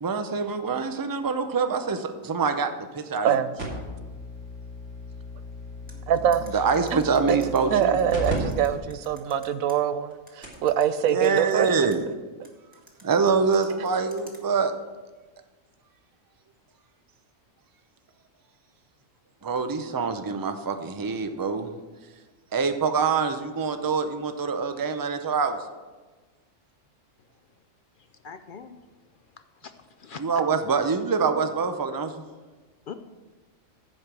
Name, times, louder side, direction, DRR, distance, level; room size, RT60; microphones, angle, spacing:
voice 1, 0.0-3.4 6.5-8.0 11.1-12.0 13.0-14.7 19.4-21.7 22.5-25.6 30.2-32.2, right 5 dB, 25° right, 8 dB, 0.4 m, -25 dB
sound 1, 3.6-8.3 8.7-8.8 9.4-9.5 10.1-10.2 10.4-10.7 11.9-12.0, left 1 dB, 60° right, 3.3 m, -36 dB
sound 2, 5.9-9.8 10.3-12.0 12.4-14.4, equal, 5° right, 1.7 m, -51 dB
voice 2, 6.1-6.5 6.9-7.4 7.7-11.7, right 9 dB, 90° right, 12 dB, 1.1 m, -24 dB
voice 3, 28.2-28.8 29.6-30.4 32.9-33.0, left 6 dB, 60° left, 8 dB, 0.5 m, -41 dB
15.0 x 5.1 x 6.1 m, 1.3 s
omnidirectional pair, 1.4 m